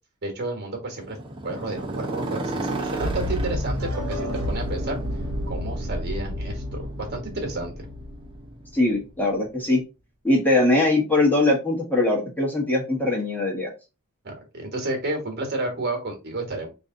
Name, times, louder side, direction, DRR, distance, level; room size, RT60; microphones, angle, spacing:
voice 1, 0.2-1.2 1.4-5.0 5.5-7.9 14.2-16.7, right 2 dB, 50° right, 2 dB, 1.3 m, -31 dB
Motorcycle, 1.0-9.0, right 1 dB, 25° right, 0.8 m, -34 dB
sound 1, 3.0-9.0, left 1 dB, 85° right, 1.0 m, -31 dB
voice 2, 8.7-9.8 10.2-13.7, left 2 dB, 10° left, -2 dB, 1.1 m, -21 dB
3.2 x 2.7 x 3.7 m, 0.28 s
head